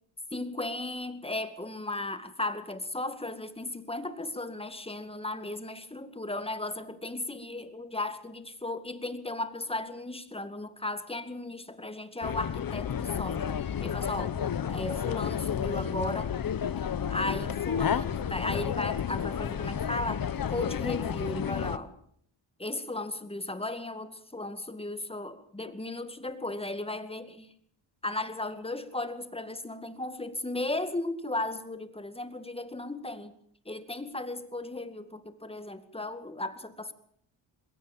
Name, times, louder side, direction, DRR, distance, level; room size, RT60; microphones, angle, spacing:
voice 1, 0.3-14.4 14.7-16.4 16.8-21.9 22.6-27.5 28.0-33.3 33.7-36.9, left 2 dB, 10° left, 2.1 m, -36 dB
sound 1, 12.2-21.8, left 8 dB, 45° left, 1.1 m, -31 dB
21.5 x 17.0 x 7.4 m
cardioid pair, 85°, 47 cm